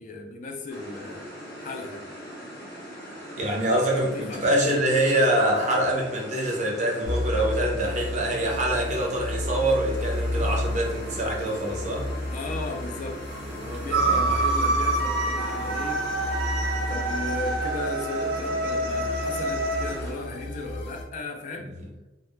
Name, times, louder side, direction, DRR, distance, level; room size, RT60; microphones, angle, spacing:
voice 1, 0.0-2.1 3.7-4.7 11.5-11.6 12.2-16.0 16.9-21.7, left 3 dB, 45° left, 3 dB, 0.3 m, -36 dB
sound 1, 0.7-20.1, equal, 15° left, 0.7 m, -41 dB
voice 2, 3.3-12.1 13.9-14.3, right 1 dB, 40° right, -1 dB, 0.6 m, -25 dB
sound 2, 7.0-21.0, left 1 dB, 85° left, 0.7 m, -32 dB
sound 3, 13.9-20.0, right 2 dB, 90° right, 0.3 m, -27 dB
2.1 x 2.0 x 3.0 m, 1.0 s
head